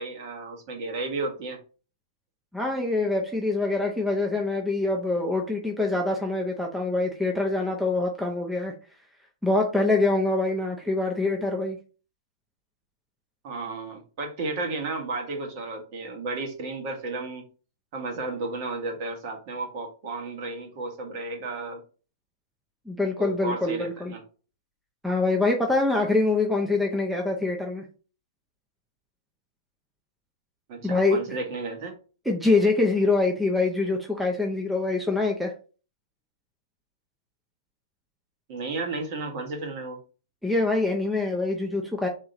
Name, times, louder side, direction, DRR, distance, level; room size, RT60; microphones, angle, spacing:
voice 1, 0.0-1.6 13.4-17.4 17.9-21.8 23.2-24.2 30.7-32.0 38.5-40.0, right 3 dB, 45° right, 1.5 m, -33 dB
voice 2, 2.5-8.7 9.4-11.8 22.9-24.1 25.0-27.9 30.8-31.2 32.3-35.5 40.4-42.1, left 2 dB, ahead, 0.5 m, -25 dB
3.7 x 3.1 x 4.0 m
hypercardioid pair, 150°, 2 cm